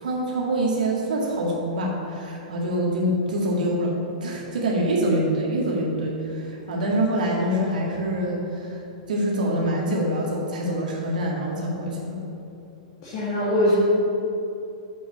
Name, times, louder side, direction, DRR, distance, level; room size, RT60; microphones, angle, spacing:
voice 1, 0.0-3.9 4.2-8.8 9.1-12.2, right 1 dB, 85° right, -3 dB, 2.0 m, -25 dB
voice 2, 13.0-13.8, left 1 dB, 40° left, -8 dB, 2.1 m, -22 dB
8.0 x 6.2 x 6.3 m, 2.8 s
hypercardioid pair, 160°, 4 cm